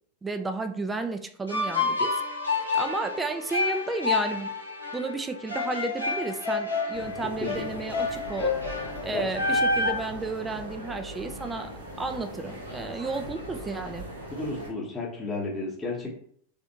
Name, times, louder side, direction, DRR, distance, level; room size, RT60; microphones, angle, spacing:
voice 1, 0.2-2.1 2.7-4.5 4.9-8.5 9.0-11.7 12.0-14.1, right 3 dB, 15° right, 8 dB, 0.4 m, -32 dB
sound 1, 1.5-9.9, left 3 dB, 85° left, 1.0 m, -29 dB
sound 2, 6.9-14.7, right 1 dB, 70° right, 1.1 m, -40 dB
voice 2, 14.4-16.1, left 3 dB, 10° left, -6 dB, 1.0 m, -33 dB
3.2 x 2.6 x 2.7 m, 0.62 s
figure-of-eight pair, 90°, 0 cm